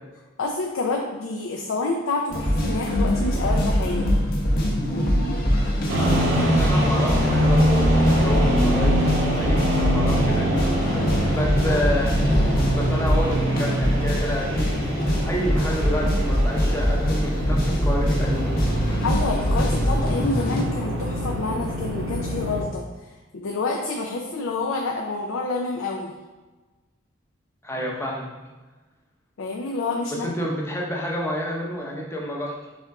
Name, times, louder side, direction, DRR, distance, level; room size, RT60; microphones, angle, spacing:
voice 1, 0.4-4.2 11.6-11.8 19.0-22.9 23.3-26.1 29.4-30.3, left 3 dB, 85° left, 0 dB, 0.5 m, -28 dB
sound 1, 2.3-20.6, equal, 45° left, 0.8 m, -23 dB
sound 2, 5.9-22.6, equal, 75° right, 1.0 m, -25 dB
voice 2, 6.3-10.7 11.3-12.2 12.7-18.5 27.6-28.3 30.2-32.5, equal, 15° left, -2 dB, 0.7 m, -29 dB
4.2 x 3.6 x 3.5 m, 1.2 s
head